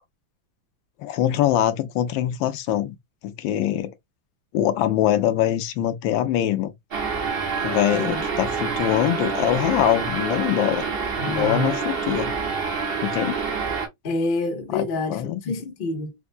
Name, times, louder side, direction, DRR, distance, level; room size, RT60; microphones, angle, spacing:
voice 1, 1.0-2.9 3.2-3.9 4.5-6.7 7.6-10.8 11.3-12.3 13.0-13.4 14.7-15.6, left 12 dB, 75° left, 1.3 m, -23 dB
sound 1, 6.9-13.9, right 5 dB, 55° right, 0.6 m, -27 dB
voice 2, 11.2-11.8 14.0-16.1, left 2 dB, 55° left, 0.5 m, -27 dB
4.3 x 2.1 x 2.4 m
omnidirectional pair, 2.2 m